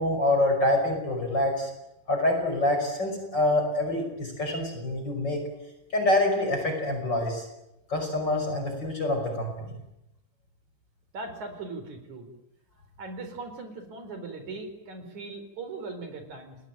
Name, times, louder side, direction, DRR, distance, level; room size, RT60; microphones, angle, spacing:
voice 1, 0.0-1.7 2.1-5.4 5.9-7.5 7.9-9.7, left 1 dB, 30° left, 4 dB, 6.0 m, -26 dB
voice 2, 11.1-12.3 13.0-16.6, right 3 dB, 60° right, 7 dB, 5.7 m, -39 dB
29.5 x 21.5 x 9.2 m, 0.90 s
omnidirectional pair, 3.8 m